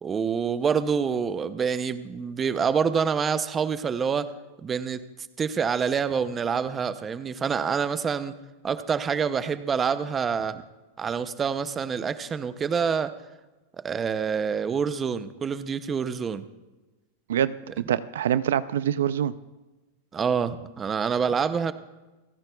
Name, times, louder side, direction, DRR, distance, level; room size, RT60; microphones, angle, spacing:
voice 1, 0.0-4.3 4.6-5.0 5.4-8.4 8.6-10.6 11.0-13.1 13.8-16.4 20.1-21.7, right 6 dB, 20° right, 13 dB, 0.5 m, -26 dB
voice 2, 17.3-19.3, right 10 dB, 85° right, 16 dB, 0.4 m, -25 dB
28.5 x 10.5 x 2.3 m, 1.1 s
supercardioid pair, 145°, 0 cm